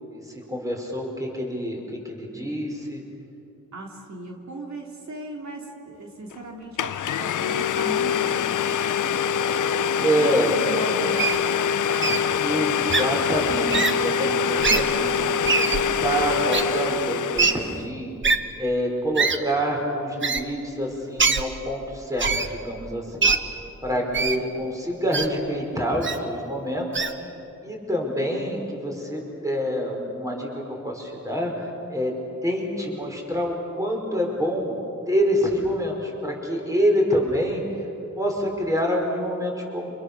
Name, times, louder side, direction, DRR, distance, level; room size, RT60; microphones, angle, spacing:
voice 1, 0.1-3.0 10.0-10.5 12.4-15.4 15.7-18.1 18.6-23.3 23.8-27.1 27.6-32.1 32.4-34.8 35.1-37.6 38.2-40.0, equal, 10° right, 0 dB, 5.2 m, -26 dB
voice 2, 3.7-9.1 10.2-12.6 23.9-24.4, right 2 dB, 65° right, 0 dB, 3.3 m, -38 dB
Domestic sounds home sounds, 6.3-6.4 6.8-17.8, left 7 dB, 90° left, 0.6 m, -24 dB
Wild animals, 11.2-11.4 12.0-12.2 12.9-13.0 13.7-13.9 14.6-14.8 15.4-15.8 16.5-16.6 17.4-17.5 18.2-18.4 19.2-19.4 20.2-20.4 21.2-21.4 22.2-22.5 23.2-23.4 24.1-24.4 25.1-25.3 26.0-26.2 26.9-27.1, right 4 dB, 40° right, 1.3 m, -22 dB
30.0 x 27.5 x 6.9 m, 2.8 s
wide cardioid pair, 165°, 30 cm